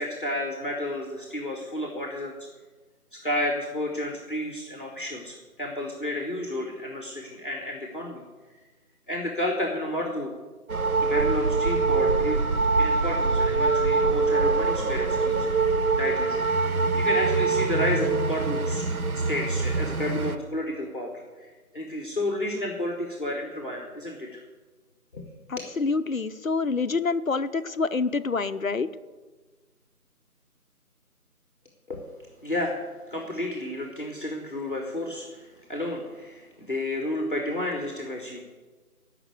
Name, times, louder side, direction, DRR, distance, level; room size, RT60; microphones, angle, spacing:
voice 1, 0.0-2.4 3.1-8.2 9.1-10.3 11.0-12.4 12.8-15.5 16.0-18.9 19.1-24.4 25.1-25.6 31.9-32.0 32.4-32.8 33.1-38.4, left 1 dB, 35° left, 1 dB, 1.5 m, -31 dB
sound 1, 10.7-20.4, right 4 dB, 65° right, 1.0 m, -24 dB
voice 2, 25.5-28.9, left 4 dB, 60° left, 10 dB, 0.8 m, -27 dB
14.0 x 5.9 x 8.1 m, 1.3 s
figure-of-eight pair, 175°, 46 cm